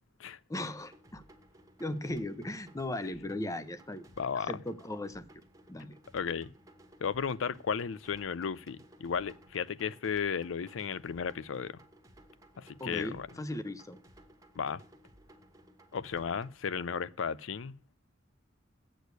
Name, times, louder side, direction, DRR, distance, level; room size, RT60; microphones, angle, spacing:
voice 1, 0.5-1.2 1.8-4.0 4.5-5.4 5.7-6.0 12.8-14.0, left 1 dB, 15° left, 0.7 m, -37 dB
sound 1, 0.5-16.5, right 1 dB, 15° right, 1.3 m, -58 dB
voice 2, 4.2-4.6 6.1-6.5 7.0-11.8 12.6-13.3 14.6-14.8 15.9-17.8, left 6 dB, 85° left, 0.5 m, -34 dB
8.2 x 6.5 x 8.0 m
head